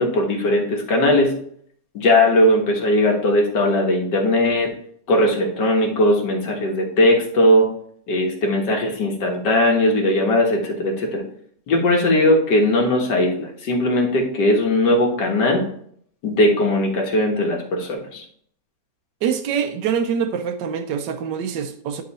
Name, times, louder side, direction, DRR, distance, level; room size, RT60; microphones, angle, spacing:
voice 1, 0.0-1.4 2.0-4.7 5.1-7.7 8.1-11.2 11.7-15.6 16.2-18.2, left 1 dB, 80° left, 2.1 m, -19 dB
voice 2, 19.2-22.0, right 7 dB, 85° right, 1.3 m, -24 dB
11.0 x 3.8 x 4.2 m
omnidirectional pair, 1.8 m